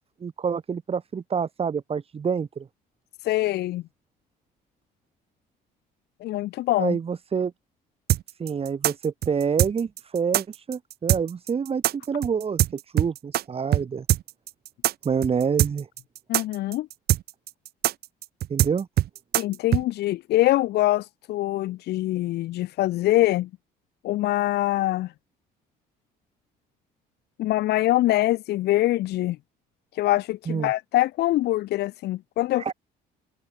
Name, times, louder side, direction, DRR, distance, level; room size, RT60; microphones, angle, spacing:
voice 1, 0.2-2.7 6.8-7.5 8.4-14.1 15.0-15.9 18.5-18.9 30.5-30.7 32.6-32.7, right 6 dB, 35° right, 4.6 m, -27 dB
voice 2, 3.2-3.8 6.2-7.0 16.3-16.9 19.4-23.5 24.0-25.1 27.4-29.4 29.9-32.6, left 16 dB, 75° left, 1.7 m, -24 dB
sound 1, 8.1-13.4 13.7-13.8 14.1-19.8, right 14 dB, 70° right, 3.2 m, -22 dB
cardioid pair, 110°, 17 cm